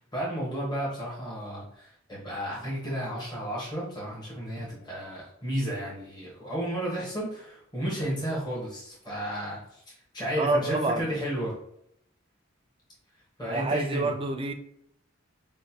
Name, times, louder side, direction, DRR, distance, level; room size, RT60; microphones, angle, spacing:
voice 1, 0.0-11.5 13.4-14.1, equal, 20° left, 1.2 m, -33 dB
voice 2, 10.4-11.1 13.5-14.5, right 2 dB, 25° right, 0.4 m, -27 dB
5.2 x 2.2 x 2.8 m
head